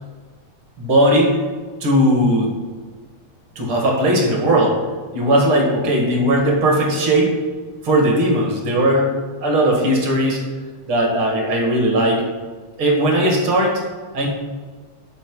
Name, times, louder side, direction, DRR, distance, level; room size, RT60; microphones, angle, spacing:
voice 1, 0.8-1.4 1.8-2.5 3.6-4.8 5.1-7.4 7.8-10.4 10.9-12.3 12.8-13.8 14.1-14.3, right 1 dB, 50° right, 0 dB, 2.4 m, -17 dB
11.5 x 4.9 x 4.7 m, 1.4 s
omnidirectional pair, 3.3 m